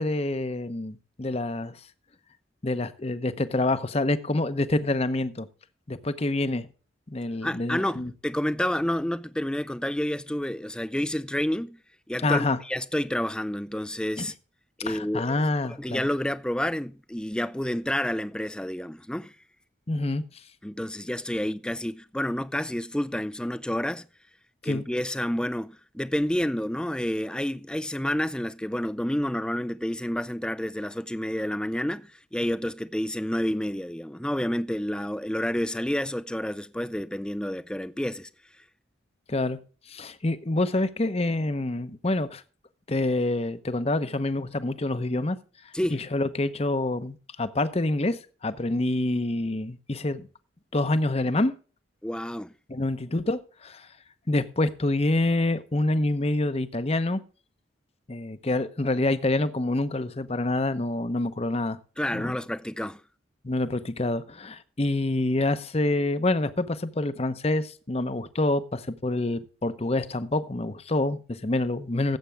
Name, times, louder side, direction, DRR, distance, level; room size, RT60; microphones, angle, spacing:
voice 1, 0.0-1.8 2.6-5.5 5.9-6.7 7.1-8.1 12.2-12.6 14.2-14.3 14.8-16.1 19.9-20.2 24.6-24.8 39.3-39.6 39.9-42.4 42.9-45.4 45.9-50.3 50.7-51.5 52.7-53.9 54.3-57.2 58.1-61.8 62.1-62.4 63.4-72.2, left 2 dB, 30° left, 0.8 m, -27 dB
voice 2, 7.4-11.8 12.1-14.3 14.8-15.4 15.8-19.3 20.6-24.1 24.6-38.3 45.7-46.0 52.0-52.5 62.0-63.0, left 1 dB, 5° left, 0.4 m, -29 dB
17.0 x 8.2 x 3.5 m
head